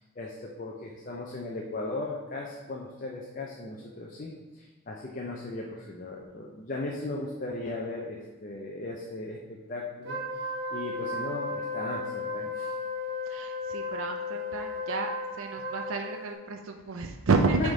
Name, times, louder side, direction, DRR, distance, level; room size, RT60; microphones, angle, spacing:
voice 1, 0.2-12.7 17.6-17.7, left 2 dB, 40° left, -1 dB, 0.5 m, -37 dB
Wind instrument woodwind instrument, 10.0-16.3, left 2 dB, 55° right, 1.0 m, -35 dB
voice 2, 13.3-15.1 15.3-17.7, right 4 dB, 70° right, 3 dB, 0.5 m, -30 dB
6.3 x 3.6 x 4.8 m, 1.2 s
head